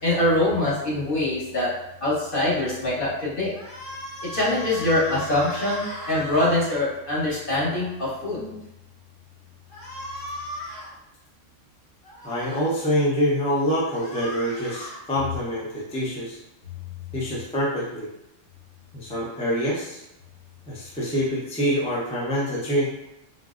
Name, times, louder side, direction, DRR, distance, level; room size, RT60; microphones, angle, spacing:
voice 1, 0.0-1.7 2.0-3.5 4.2-8.6, left 1 dB, 50° left, -7 dB, 1.1 m, -24 dB
sound 1, 3.5-6.6 9.7-10.9 12.0-12.6 13.8-15.0, equal, 85° left, 1.4 m, -37 dB
voice 2, 12.2-16.4 17.1-18.1 18.9-20.0 20.7-22.9, equal, 10° left, -6 dB, 0.3 m, -25 dB
3.9 x 2.0 x 2.4 m, 0.89 s
omnidirectional pair, 1.3 m